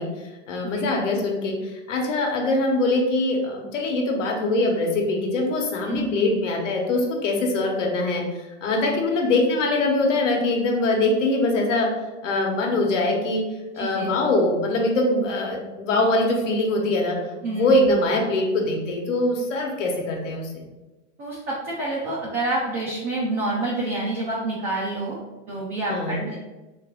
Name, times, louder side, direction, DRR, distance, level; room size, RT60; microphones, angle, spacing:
voice 1, 0.0-11.9 12.2-13.4 13.7-17.2 17.5-20.7 25.9-26.3, left 2 dB, 75° left, 1 dB, 1.1 m, -23 dB
voice 2, 5.9-6.3 13.8-14.1 17.4-17.8 21.2-25.2 25.5-26.3, right 2 dB, 20° right, -5 dB, 0.3 m, -28 dB
3.3 x 3.2 x 3.6 m, 1.1 s
supercardioid pair, 150°, 37 cm